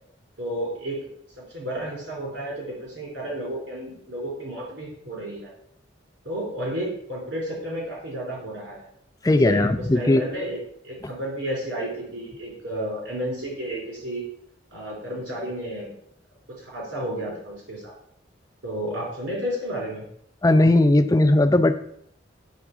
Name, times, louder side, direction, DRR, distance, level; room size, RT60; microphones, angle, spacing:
voice 1, 0.4-1.1 1.4-5.5 6.2-8.9 9.3-9.6 9.9-10.6 10.8-14.2 14.7-15.9 16.5-17.9 18.6-20.0, equal, 90° right, -4 dB, 3.8 m, -32 dB
voice 2, 9.2-10.2 20.4-21.7, left 2 dB, 20° left, 10 dB, 0.4 m, -18 dB
9.1 x 3.6 x 6.0 m, 0.70 s
head